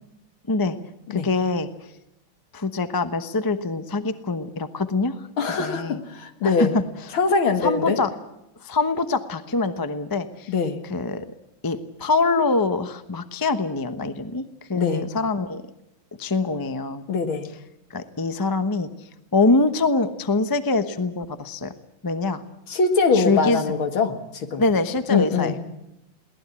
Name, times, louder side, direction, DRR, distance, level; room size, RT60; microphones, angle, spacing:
voice 1, 1.1-1.9 2.5-5.3 5.6-6.0 6.4-6.8 7.6-8.1 8.6-10.5 10.9-11.2 11.6-15.6 16.2-17.1 17.9-21.7 22.0-22.4 23.1-23.6 24.6-25.5, left 3 dB, 20° left, 10 dB, 0.6 m, -24 dB
voice 2, 5.4-6.7 7.1-8.0 10.5-10.8 14.7-15.1 17.1-17.5 22.7-24.6 25.1-25.8, left 4 dB, 75° left, 7 dB, 2.6 m, -23 dB
22.5 x 18.0 x 8.4 m, 0.87 s
omnidirectional pair, 2.3 m